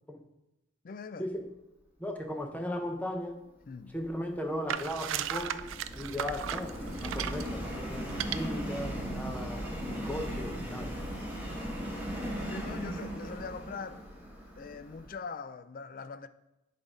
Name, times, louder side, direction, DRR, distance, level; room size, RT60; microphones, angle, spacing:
voice 1, 0.8-1.3 3.7-4.0 6.1-6.3 8.2-8.4 11.2-11.5 12.5-14.0 14.6-16.3, left 5 dB, 45° left, 0.4 m, -43 dB
voice 2, 2.0-3.4 3.9-5.7 6.0-9.6 9.9-11.0, left 1 dB, 10° left, 0.7 m, -37 dB
Subway metro underground, 3.8-15.1, equal, 10° right, 1.7 m, -38 dB
sound 1, 4.7-7.5 8.1-8.4, right 10 dB, 80° right, 0.3 m, -35 dB
8.3 x 3.8 x 4.9 m
head